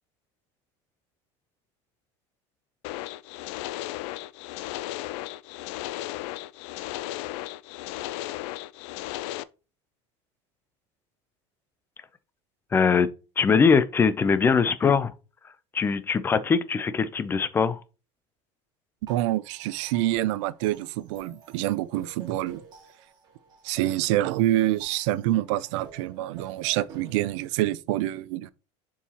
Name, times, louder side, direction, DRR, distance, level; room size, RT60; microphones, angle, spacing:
sound 1, 2.8-9.4, left 16 dB, 75° left, 0.4 m, -35 dB
voice 1, 12.7-13.1 13.4-15.1 15.7-17.8, left 5 dB, 15° left, 0.4 m, -21 dB
sound 2, 19.1-27.4, right 5 dB, 30° right, 2.0 m, -51 dB
voice 2, 19.1-22.6 23.6-28.5, right 15 dB, 85° right, 0.5 m, -26 dB
6.9 x 4.7 x 2.9 m
cardioid pair, 160°, 15 cm